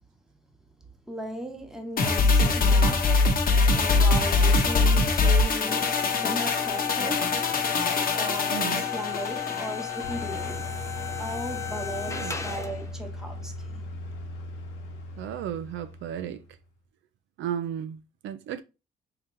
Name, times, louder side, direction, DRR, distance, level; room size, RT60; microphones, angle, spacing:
voice 1, 1.1-3.1 3.7-6.0 6.2-7.4 8.1-10.7 11.2-13.8, right 1 dB, ahead, 1.1 m, -37 dB
sound 1, 2.0-10.5 10.9-11.0, left 3 dB, 45° left, 0.9 m, -23 dB
sound 2, 5.7-12.9, left 9 dB, 15° left, 0.7 m, -33 dB
voice 2, 8.5-8.8 12.1-12.4 15.2-16.4 17.4-18.6, right 10 dB, 75° right, 0.4 m, -34 dB
sound 3, 10.0-16.6, left 1 dB, 90° left, 1.1 m, -38 dB
3.7 x 2.9 x 3.3 m
cardioid pair, 90°, 20 cm